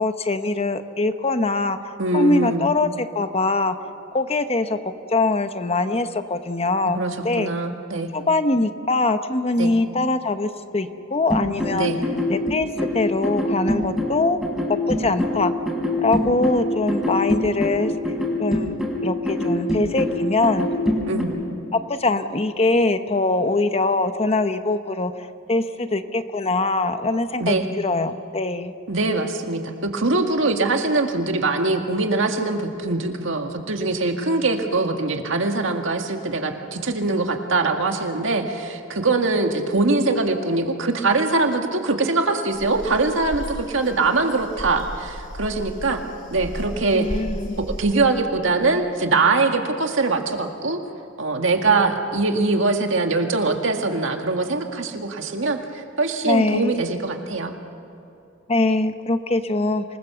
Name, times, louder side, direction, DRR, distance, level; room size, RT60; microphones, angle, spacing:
voice 1, 0.0-3.8 4.1-7.5 8.1-11.9 12.3-14.4 14.7-15.5 16.0-17.9 18.4-20.7 21.7-28.7 46.9-47.6 56.2-56.8 58.5-59.8, left 2 dB, 30° left, 9 dB, 0.9 m, -23 dB
voice 2, 2.0-2.7 6.8-8.1 9.6-9.7 11.7-12.0 21.1-21.3 27.4-27.7 28.9-46.0 46.3-47.2 47.7-50.8 51.2-57.5, right 3 dB, 70° right, 4 dB, 1.9 m, -22 dB
sound 1, 11.3-21.2, left 1 dB, ahead, 4.5 m, -24 dB
Silvo de aves, 42.5-47.8, equal, 70° left, 4.3 m, -34 dB
26.5 x 20.5 x 7.0 m, 2.7 s
head